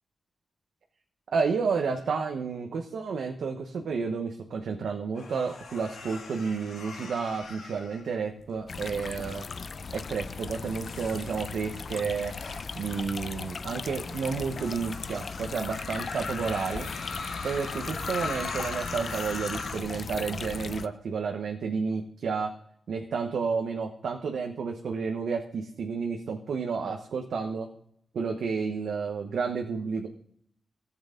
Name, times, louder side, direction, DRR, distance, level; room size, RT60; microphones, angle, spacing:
voice 1, 1.3-9.5 9.9-12.3 12.8-16.9 17.4-22.5 22.9-27.7 28.1-30.1, right 5 dB, 85° right, 2 dB, 1.1 m, -31 dB
sound 1, 5.2-8.6 9.2-9.7 10.4-19.8, left 3 dB, 90° left, 2.5 m, -40 dB
sound 2, 8.7-20.9, left 5 dB, 60° left, 0.5 m, -38 dB
14.5 x 8.0 x 3.9 m, 0.65 s
cardioid pair, 75°, 0 cm